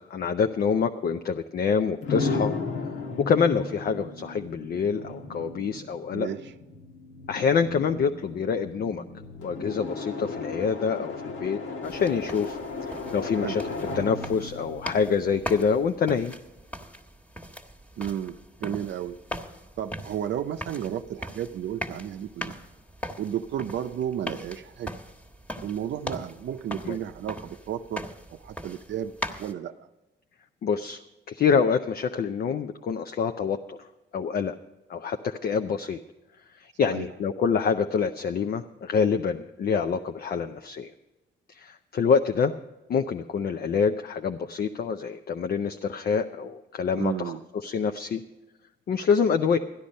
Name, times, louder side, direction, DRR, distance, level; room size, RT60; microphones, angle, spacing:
voice 1, 0.1-2.5 3.2-6.3 7.3-9.0 9.4-12.6 12.9-13.6 13.9-16.3 26.8-27.0 30.6-31.0 31.3-33.9 34.1-34.6 34.9-36.0 36.5-40.9 41.5-42.5 42.9-47.3 47.6-48.2 48.9-49.6, left 6 dB, 50° left, 7 dB, 0.6 m, -26 dB
sound 1, 2.0-15.8, left 3 dB, 85° left, 1.5 m, -35 dB
voice 2, 6.1-6.4 13.4-13.6 18.0-19.2 19.8-22.6 23.2-24.9 25.6-28.0 28.3-29.1 29.4-29.9 36.8-37.1 47.0-47.4, right 10 dB, 65° right, 8 dB, 0.6 m, -32 dB
sound 2, 11.8-29.5, equal, 5° left, 1.4 m, -40 dB
13.5 x 10.0 x 5.3 m, 1.1 s
cardioid pair, 90°, 20 cm